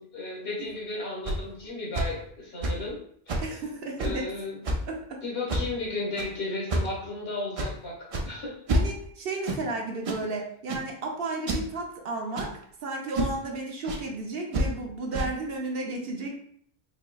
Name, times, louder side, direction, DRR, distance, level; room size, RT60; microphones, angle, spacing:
voice 1, 0.0-3.0 3.3-3.4 4.0-4.6 5.2-8.6, left 2 dB, 70° left, -4 dB, 1.5 m, -34 dB
sound 1, 0.7-0.8 1.3-1.4 1.9-2.1 2.6-2.9 3.3-3.5 4.0-4.2 4.6-4.9 5.5-5.8 6.2-6.3 6.7-7.0 7.6-7.7 8.1-8.3 8.7-9.1 9.4-9.6 10.0-10.2 10.7-10.9 11.5-11.7 12.4-12.6 13.1-13.4 13.9-14.0 14.5-14.7 15.1-15.3, right 1 dB, 45° right, 0.4 m, -28 dB
voice 2, 3.4-4.3 4.9-5.2 8.7-12.5 12.8-16.4, right 2 dB, 65° right, 0 dB, 0.9 m, -33 dB
4.1 x 2.9 x 2.3 m, 0.64 s
omnidirectional pair, 1.1 m